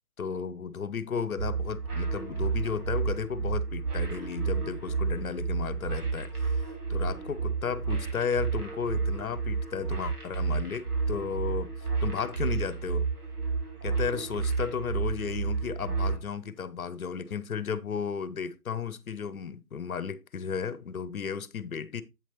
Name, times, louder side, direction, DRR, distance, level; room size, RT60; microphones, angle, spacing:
voice 1, 0.2-11.7 12.0-13.1 13.8-22.0, left 6 dB, 65° left, 0.9 m, -34 dB
sound 1, 1.4-16.2, right 5 dB, 75° right, 3.4 m, -31 dB
8.2 x 7.3 x 2.9 m
figure-of-eight pair, 135°, 47 cm